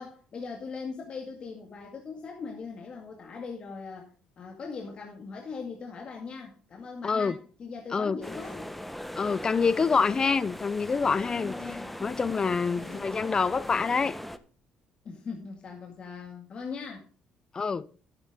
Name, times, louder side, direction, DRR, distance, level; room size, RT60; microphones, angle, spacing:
voice 1, 0.0-4.1 4.4-8.7 9.8-9.9 11.3-12.0 12.3-13.1 15.0-17.1, left 5 dB, 50° left, 2.1 m, -40 dB
voice 2, 7.0-7.3 7.9-8.2 9.2-14.2 17.5-17.9, left 5 dB, 35° left, 0.6 m, -26 dB
sound 1, 8.2-14.4, left 1 dB, 5° left, 1.0 m, -40 dB
11.0 x 9.8 x 3.7 m
supercardioid pair, 80°, 2 cm